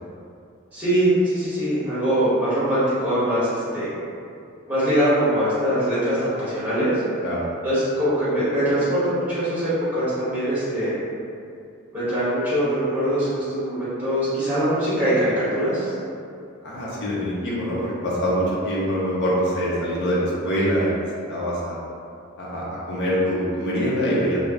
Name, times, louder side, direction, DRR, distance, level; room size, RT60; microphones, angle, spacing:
voice 1, 0.7-3.9 4.7-7.0 7.6-10.9 11.9-15.9, equal, 10° right, -12 dB, 1.2 m, -22 dB
voice 2, 16.6-20.9 21.3-21.8 22.4-24.4, equal, 55° left, -6 dB, 0.6 m, -24 dB
2.3 x 2.0 x 3.4 m, 2.5 s
head